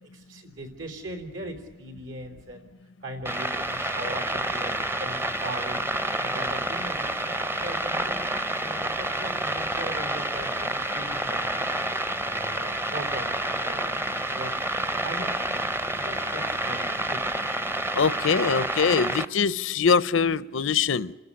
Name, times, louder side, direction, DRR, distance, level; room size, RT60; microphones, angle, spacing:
voice 1, 0.0-2.7 3.0-5.9 6.2-8.2 8.6-11.6 12.2-14.6 15.0-17.3, right 1 dB, 75° right, 6 dB, 3.8 m, -40 dB
sound 1, 3.2-19.2, right 1 dB, 10° right, 0.7 m, -29 dB
voice 2, 17.9-21.1, left 6 dB, 80° left, 18 dB, 0.7 m, -23 dB
28.0 x 13.5 x 9.8 m, 1.2 s
head